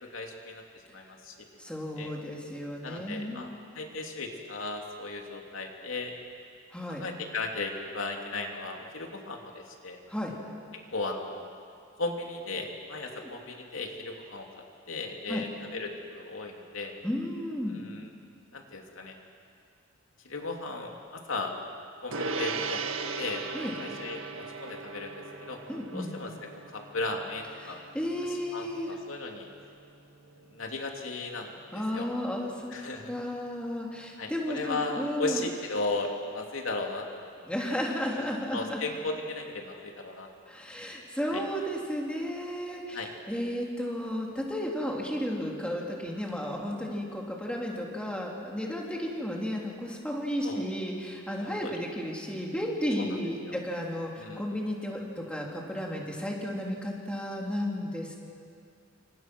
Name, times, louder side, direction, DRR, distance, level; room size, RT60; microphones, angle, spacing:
voice 1, 0.0-0.6 0.9-1.4 2.0-2.1 2.8-3.5 3.7-6.1 6.9-10.0 10.7-11.5 12.0-17.0 17.7-18.1 18.5-19.1 20.2-21.5 22.0-22.8 23.2-23.4 23.8-25.6 25.9-26.3 26.7-27.8 28.3-29.5 30.5-32.1 32.7-33.1 34.2-37.5 38.1-40.3 41.3-41.4 42.9-43.1 50.4-50.7 51.4-51.8 53.0-53.1 53.4-53.5 54.2-54.5, left 3 dB, 85° left, 2 dB, 2.9 m, -36 dB
voice 2, 1.6-3.5 6.7-7.0 10.1-10.3 13.1-13.3 15.3-15.4 17.0-17.8 23.5-23.7 25.7-26.1 27.6-29.0 31.7-32.7 33.1-35.4 37.5-38.8 40.5-58.1, equal, 5° left, -2 dB, 3.2 m, -33 dB
Gong, 22.1-31.8, right 4 dB, 85° right, 1.5 m, -39 dB
28.5 x 25.5 x 6.2 m, 2.4 s
head